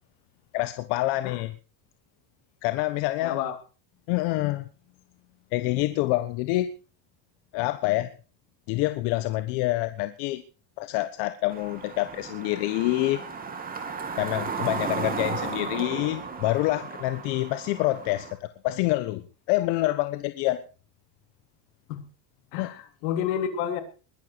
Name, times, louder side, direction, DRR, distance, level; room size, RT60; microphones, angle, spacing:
voice 1, 0.5-1.5 2.6-3.4 4.1-4.7 5.5-6.7 7.5-8.1 8.7-10.4 10.8-13.2 14.2-20.6 22.6-22.7, left 17 dB, 60° left, 11 dB, 1.3 m, -27 dB
voice 2, 3.2-3.6 21.9-22.0 22.5-23.8, left 9 dB, 80° left, 8 dB, 3.6 m, -29 dB
sound 1, 11.5-18.3, right 5 dB, 20° right, 2.5 m, -35 dB
21.0 x 12.0 x 4.7 m, 0.36 s
cardioid pair, 175°, 46 cm